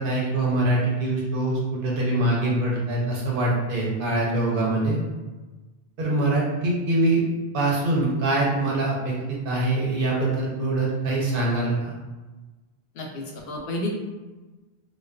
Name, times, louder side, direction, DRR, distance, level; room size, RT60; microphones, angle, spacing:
voice 1, 0.0-5.0 6.0-7.2 7.5-11.9, right 2 dB, 60° right, -3 dB, 0.8 m, -24 dB
voice 2, 12.9-13.9, left 1 dB, 70° left, 0 dB, 0.7 m, -31 dB
2.4 x 2.2 x 2.2 m, 1.2 s
omnidirectional pair, 1.1 m